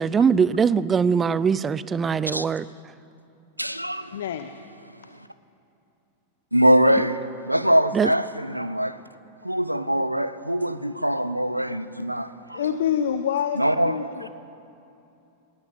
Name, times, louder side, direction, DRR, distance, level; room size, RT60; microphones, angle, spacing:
voice 1, 0.0-2.7 7.0-7.1 7.9-8.1, right 6 dB, 20° right, 19 dB, 0.6 m, -21 dB
voice 2, 3.6-4.1 6.5-9.0 9.4-12.6 13.6-13.9, equal, 90° right, 14 dB, 0.8 m, -23 dB
voice 3, 4.1-4.5 12.5-14.3, left 8 dB, 60° left, 9 dB, 0.9 m, -26 dB
19.5 x 18.5 x 7.8 m, 2.7 s
figure-of-eight pair, 90°, 0 cm